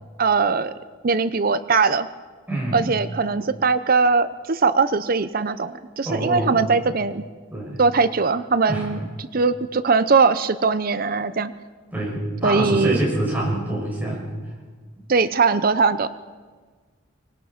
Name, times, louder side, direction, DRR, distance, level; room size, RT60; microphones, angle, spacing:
voice 1, 0.2-0.7 1.0-2.1 2.7-7.2 7.8-11.5 12.4-13.0 15.1-16.1, right 4 dB, 45° right, 13 dB, 0.6 m, -20 dB
voice 2, 2.5-2.9 6.0-6.6 7.5-7.8 8.7-8.9 11.9-14.5, right 1 dB, 10° right, -4 dB, 7.6 m, -26 dB
24.5 x 19.5 x 5.9 m, 1.5 s
head